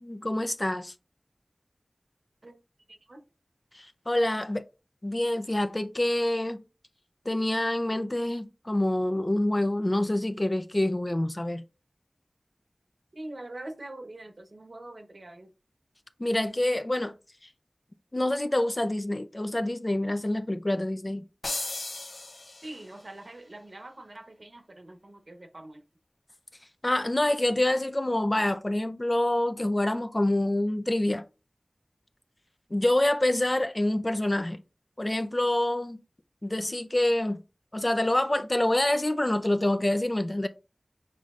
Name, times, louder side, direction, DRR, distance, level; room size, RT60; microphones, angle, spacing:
voice 1, 0.0-0.9 3.7-4.6 5.0-6.6 7.3-11.6 16.2-17.1 18.1-21.2 26.8-31.2 32.7-34.6 35.0-36.0 36.4-37.4 37.7-40.5, left 1 dB, 35° left, 0.5 m, -26 dB
voice 2, 2.9-3.2 13.1-15.5 22.6-25.8, right 1 dB, 65° right, 1.0 m, -44 dB
sound 1, 21.4-23.1, left 2 dB, 85° left, 0.8 m, -36 dB
6.7 x 3.1 x 2.5 m
wide cardioid pair, 55°, 0 cm